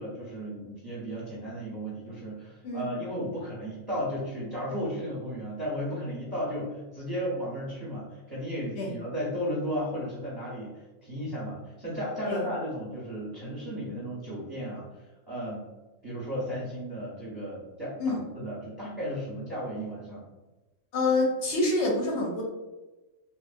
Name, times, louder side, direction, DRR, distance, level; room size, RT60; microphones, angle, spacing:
voice 1, 0.0-14.9 15.3-15.7 16.0-20.2, equal, 20° right, -7 dB, 0.7 m, -34 dB
voice 2, 20.9-22.4, left 2 dB, 70° left, -1 dB, 0.8 m, -26 dB
2.9 x 2.1 x 2.5 m, 1.1 s
omnidirectional pair, 1.3 m